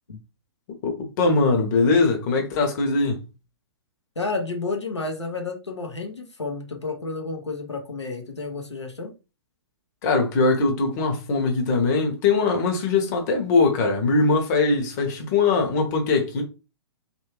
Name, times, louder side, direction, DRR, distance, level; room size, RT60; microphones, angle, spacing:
voice 1, 0.8-3.2 10.0-16.4, left 3 dB, 40° left, 1.0 m, -21 dB
voice 2, 4.2-9.1, left 3 dB, 90° left, 0.9 m, -31 dB
3.2 x 2.7 x 3.0 m
figure-of-eight pair, 120°, 14 cm